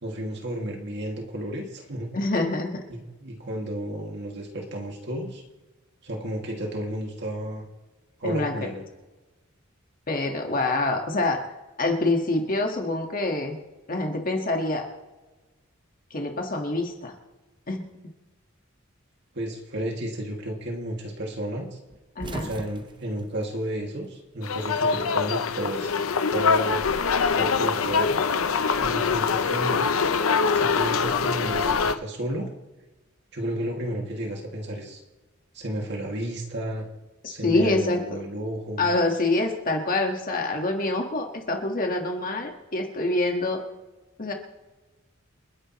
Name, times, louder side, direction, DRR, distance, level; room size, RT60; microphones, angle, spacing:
voice 1, 0.0-2.1 2.9-5.4 6.0-7.7 8.2-8.8 19.3-21.8 22.3-25.9 26.3-26.8 27.4-28.2 28.8-29.8 30.5-32.5 33.3-35.0 35.5-36.9 37.3-38.9, right 1 dB, 55° right, 0 dB, 2.4 m, -32 dB
voice 2, 2.1-2.8 8.2-8.7 10.1-11.4 11.8-13.6 13.9-14.9 16.1-17.1 17.7-17.9 22.2-22.5 37.2-38.2 38.8-43.6 44.2-44.3, left 2 dB, 45° left, 2 dB, 1.7 m, -26 dB
sound 1, 21.9-24.4 24.7-25.8 27.0-28.4, right 2 dB, 25° right, 0.7 m, -41 dB
sound 2, 24.4-31.9, left 5 dB, 80° left, 0.7 m, -24 dB
29.0 x 10.0 x 3.2 m, 1.2 s
head